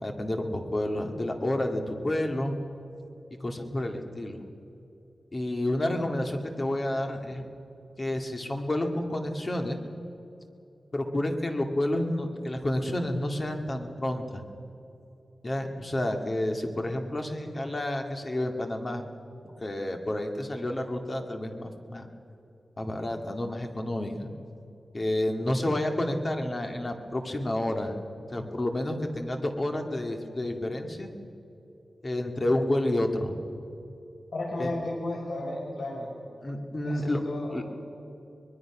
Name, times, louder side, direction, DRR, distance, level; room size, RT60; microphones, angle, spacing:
voice 1, 0.0-2.5 3.4-4.5 5.3-7.4 8.0-9.8 10.9-14.4 15.4-19.0 19.6-22.1 22.8-24.3 24.9-28.0 28.3-31.1 32.0-33.4 34.6-34.7 36.4-37.2 37.5-37.7, left 1 dB, 30° left, 4 dB, 2.0 m, -30 dB
voice 2, 34.3-36.1 36.8-37.5, left 2 dB, 90° left, -3 dB, 6.1 m, -33 dB
24.5 x 21.0 x 6.1 m, 2.9 s
wide cardioid pair, 140°, 0 cm